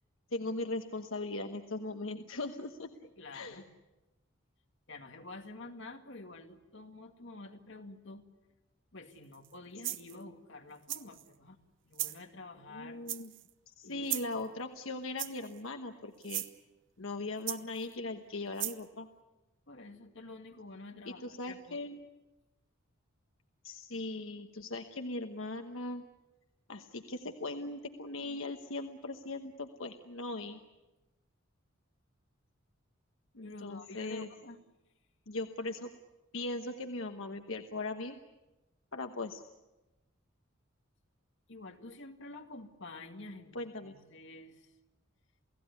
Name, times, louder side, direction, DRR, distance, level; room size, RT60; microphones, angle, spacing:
voice 1, 0.3-2.9 3.3-3.6 12.7-13.3 13.7-16.4 17.0-19.1 21.2-22.0 23.6-26.0 26.7-30.6 33.3-34.3 35.3-35.9 36.3-38.2 38.9-39.4 43.5-44.0, left 2 dB, 75° left, 6 dB, 1.2 m, -39 dB
voice 2, 3.0-3.7 4.9-8.2 8.9-11.6 11.8-13.0 13.8-14.1 19.7-21.8 33.4-34.6 41.5-44.7, left 2 dB, 60° left, 4 dB, 2.1 m, -49 dB
sound 1, 9.3-9.5 9.8-10.2 10.9-11.3 11.9-12.2 13.1-13.5 14.1-14.4 15.2-15.6 16.2-16.5 17.5-17.9 18.6-18.8, right 14 dB, 60° right, 0.9 m, -37 dB
29.0 x 17.5 x 9.6 m, 1.1 s
head